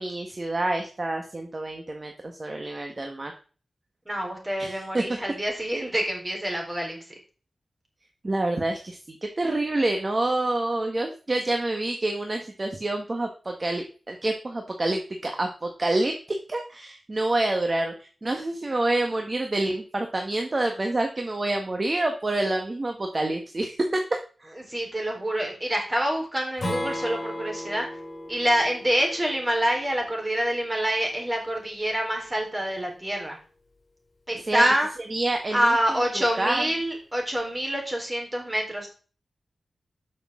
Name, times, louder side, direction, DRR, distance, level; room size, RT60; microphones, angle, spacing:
voice 1, 0.0-3.3 4.6-5.2 8.2-16.1 16.5-17.9 18.2-24.0 24.4-24.5 34.4-34.6 35.1-36.7, right 2 dB, 40° right, 3 dB, 1.4 m, -27 dB
voice 2, 4.1-7.0 24.7-27.9 28.3-33.4 34.3-34.9 35.5-38.9, right 1 dB, 20° right, 1 dB, 4.1 m, -26 dB
Strum, 26.6-31.8, left 1 dB, 45° left, 6.1 m, -36 dB
12.0 x 6.5 x 3.7 m, 0.38 s
wide cardioid pair, 70°, 0 cm